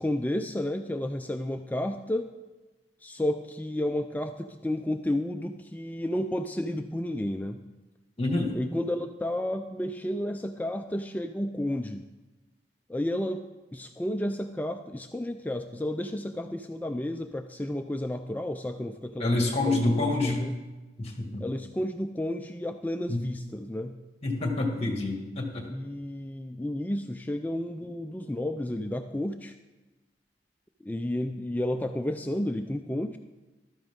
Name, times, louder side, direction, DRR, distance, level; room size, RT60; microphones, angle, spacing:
voice 1, 0.0-2.3 3.0-7.6 8.5-12.0 12.9-13.4 13.7-20.5 21.4-24.0 25.7-29.5 30.8-33.2, left 1 dB, 10° left, 6 dB, 0.3 m, -31 dB
voice 2, 8.2-8.5 19.2-20.5 21.0-21.4 23.1-23.2 24.2-25.6, left 2 dB, 35° left, 2 dB, 2.1 m, -27 dB
14.5 x 12.5 x 3.7 m, 1.2 s
head